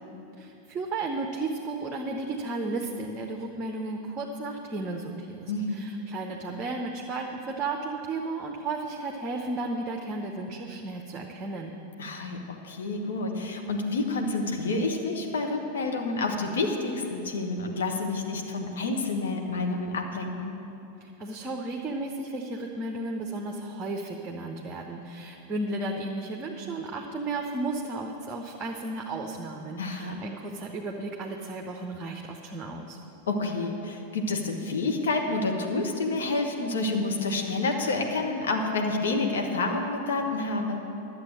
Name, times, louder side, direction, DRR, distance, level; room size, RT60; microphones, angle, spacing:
voice 1, 0.4-11.7 21.0-33.0, right 2 dB, 20° right, 1 dB, 0.9 m, -34 dB
voice 2, 5.5-5.9 12.0-20.5 29.8-30.2 33.3-40.8, left 3 dB, 65° left, 2 dB, 1.3 m, -29 dB
11.5 x 7.6 x 7.7 m, 2.9 s
figure-of-eight pair, 90°, 0 cm